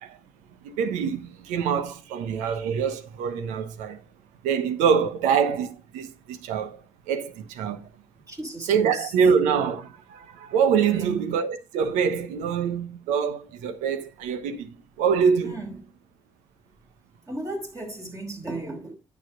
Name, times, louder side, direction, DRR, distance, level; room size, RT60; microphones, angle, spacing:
voice 1, 0.6-4.0 4.4-7.9 8.7-15.5, right 7 dB, 85° right, 1.0 m, -25 dB
voice 2, 8.3-9.1 10.9-11.2 15.4-15.8 17.2-18.9, right 2 dB, 25° right, 5.3 m, -35 dB
9.3 x 7.1 x 3.7 m
hypercardioid pair, 45°, 12 cm